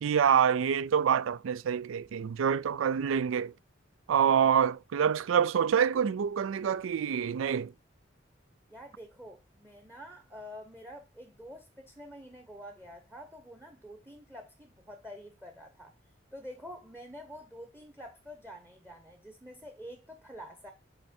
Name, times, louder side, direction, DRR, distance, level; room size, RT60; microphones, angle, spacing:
voice 1, 0.0-3.5 4.1-7.7, right 7 dB, 90° right, 0.4 m, -26 dB
voice 2, 8.7-15.9 16.3-20.7, equal, 10° right, 0.8 m, -47 dB
8.0 x 3.2 x 4.3 m
head